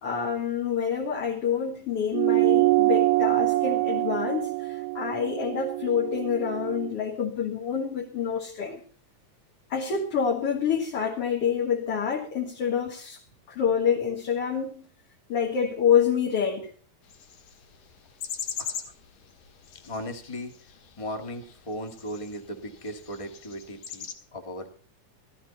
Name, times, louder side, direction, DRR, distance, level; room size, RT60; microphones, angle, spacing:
voice 1, 0.0-8.8 9.7-13.2 13.5-14.8 15.3-16.7, left 7 dB, 55° left, 2.4 m, -27 dB
sound 1, 2.1-6.9, right 20 dB, 80° right, 2.1 m, -25 dB
sound 2, 17.1-24.1, left 7 dB, 80° left, 3.1 m, -41 dB
voice 2, 19.8-20.5 21.0-24.0 24.3-24.7, equal, 15° left, 1.1 m, -37 dB
14.5 x 14.0 x 4.1 m
omnidirectional pair, 3.6 m